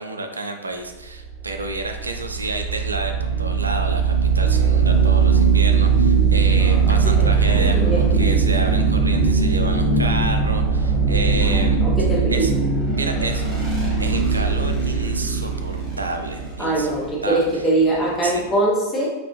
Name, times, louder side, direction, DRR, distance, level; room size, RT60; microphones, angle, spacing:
voice 1, 0.0-11.8 12.3-12.5 12.9-13.5 14.0-16.9 17.2-17.4 18.2-18.4, right 2 dB, 80° right, 5 dB, 0.4 m, -30 dB
sound 1, 1.1-18.5, right 5 dB, 20° right, 1.1 m, -20 dB
voice 2, 6.7-8.1 11.4-12.4 16.6-19.1, right 2 dB, 15° left, -4 dB, 1.0 m, -23 dB
4.2 x 2.4 x 3.0 m, 1.1 s
figure-of-eight pair, 90°, 0 cm